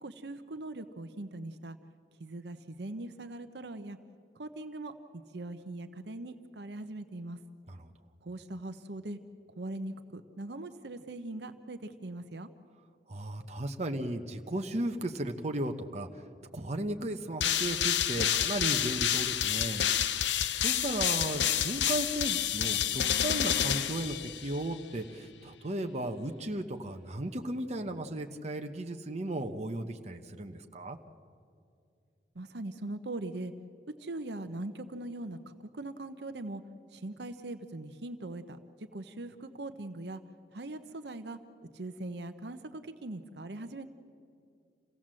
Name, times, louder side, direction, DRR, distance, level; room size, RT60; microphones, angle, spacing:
voice 1, 0.0-1.8 2.2-4.0 4.4-7.4 8.2-9.2 9.6-12.5 20.9-21.0 32.3-33.5 34.0-36.6 36.9-38.6 38.9-40.2 40.5-41.4 41.7-43.9, right 2 dB, 65° right, 9 dB, 0.9 m, -41 dB
voice 2, 13.1-16.2 16.5-31.0, right 1 dB, 40° right, 4 dB, 1.0 m, -35 dB
sound 1, 17.4-24.7, left 10 dB, 80° left, 0.7 m, -29 dB
27.5 x 16.5 x 7.6 m, 2.4 s
head